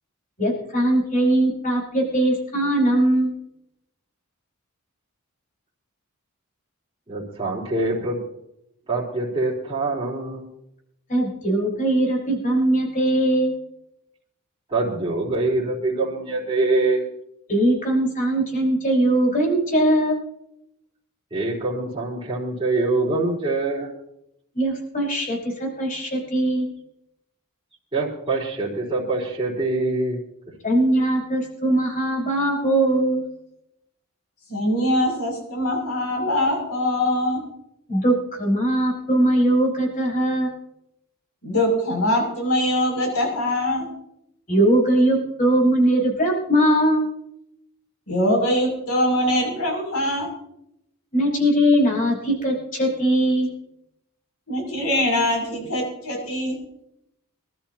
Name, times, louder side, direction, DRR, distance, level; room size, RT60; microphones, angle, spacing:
voice 1, 0.4-3.3 11.1-13.6 17.5-20.2 24.6-26.7 30.6-33.3 37.9-40.5 44.5-47.1 51.1-53.5, right 1 dB, 40° left, -2 dB, 5.4 m, -20 dB
voice 2, 7.1-8.2 8.9-10.4 14.7-17.0 21.3-23.9 27.9-30.2, right 2 dB, 25° right, -8 dB, 4.3 m, -24 dB
voice 3, 34.5-37.4 41.4-43.9 48.1-50.3 54.5-56.6, left 1 dB, 85° left, 1 dB, 7.1 m, -23 dB
25.0 x 13.0 x 2.9 m, 0.80 s
head